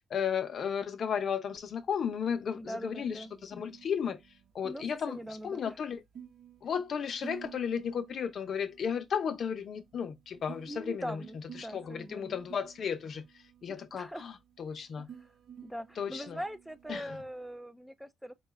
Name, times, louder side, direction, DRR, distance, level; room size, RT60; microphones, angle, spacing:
voice 1, 0.1-4.2 4.5-6.0 6.6-11.2 11.6-13.2 13.6-14.3 14.6-15.1 16.0-16.4 16.9-17.2, left 7 dB, 60° left, 0.6 m, -34 dB
sound 1, 1.5-17.6, right 9 dB, 70° right, 0.9 m, -54 dB
voice 2, 2.5-3.3 4.6-5.8 10.7-12.4 13.9-14.3 15.2-15.3 15.6-18.3, equal, 5° right, 0.4 m, -42 dB
4.3 x 2.3 x 3.1 m
cardioid pair, 85°, 0 cm